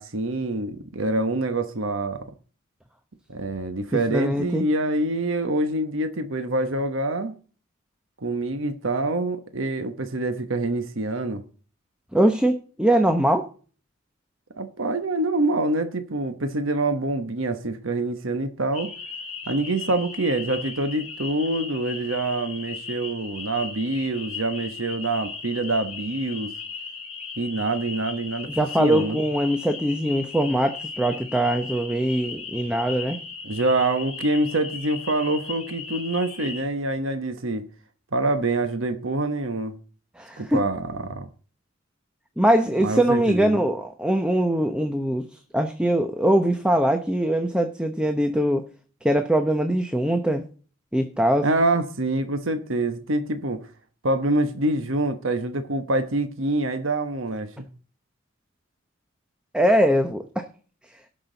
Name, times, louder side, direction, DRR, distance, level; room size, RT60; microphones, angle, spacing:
voice 1, 0.0-2.2 3.3-7.3 8.2-11.4 14.6-18.9 19.5-26.5 27.4-28.5 28.8-29.2 33.4-37.6 38.1-39.7 40.4-41.3 42.8-43.6 51.4-53.6 54.0-57.7, right 2 dB, 75° right, 1.2 m, -26 dB
voice 2, 4.1-4.7 12.1-13.5 28.5-33.2 40.2-40.6 42.4-45.2 45.5-48.7 49.0-50.4 50.9-51.5 59.5-60.5, right 1 dB, 5° right, 0.8 m, -22 dB
sound 1, 18.7-36.6, left 4 dB, 30° left, 4.3 m, -37 dB
18.0 x 6.2 x 4.0 m
head